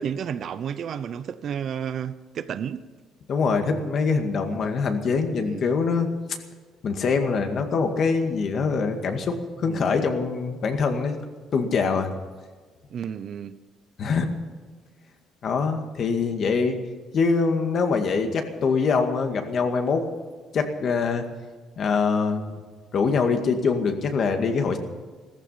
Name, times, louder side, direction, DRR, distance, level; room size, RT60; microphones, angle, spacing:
voice 1, 0.0-2.8 4.5-4.6 5.4-5.7 9.6-9.9 12.9-13.6, right 8 dB, 50° right, 0.7 m, -32 dB
voice 2, 3.3-6.1 6.8-11.2 11.5-12.1 14.0-14.3 15.4-16.8 17.1-20.0 20.5-21.3 21.8-22.6 22.9-24.8, left 5 dB, 50° left, 2.0 m, -24 dB
16.0 x 14.5 x 5.7 m
cardioid pair, 130°, 0 cm